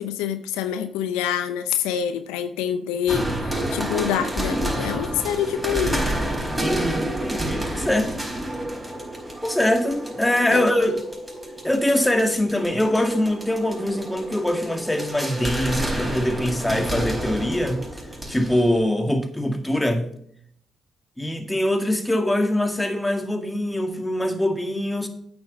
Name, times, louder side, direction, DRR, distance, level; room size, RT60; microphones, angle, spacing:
voice 1, 0.0-6.1 10.5-10.7, left 9 dB, 90° left, 0.6 m, -26 dB
sound 1, 3.1-18.8, right 1 dB, 15° right, 4.9 m, -29 dB
voice 2, 6.6-8.3 9.4-11.0 11.6-17.8 18.3-20.1 21.2-25.1, left 1 dB, 10° left, 2.0 m, -23 dB
8.7 x 7.2 x 5.5 m
supercardioid pair, 50°, 0 cm